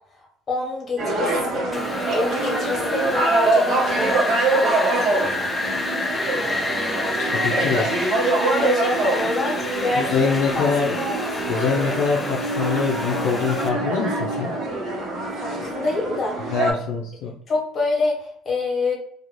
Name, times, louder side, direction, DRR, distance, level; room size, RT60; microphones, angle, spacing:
voice 1, 0.5-5.8 8.6-10.7 11.2-11.3 15.3-16.5 17.5-18.9, left 3 dB, 40° left, -1 dB, 1.2 m, -27 dB
sound 1, 1.0-16.7, right 2 dB, 55° right, 0.9 m, -24 dB
Wind, 1.7-13.7, left 2 dB, 20° left, 0.5 m, -29 dB
voice 2, 7.2-7.9 10.0-11.0 11.5-14.5 16.5-17.3, left 5 dB, 80° left, -1 dB, 0.4 m, -24 dB
2.4 x 2.3 x 3.0 m, 0.67 s
supercardioid pair, 75°, 0 cm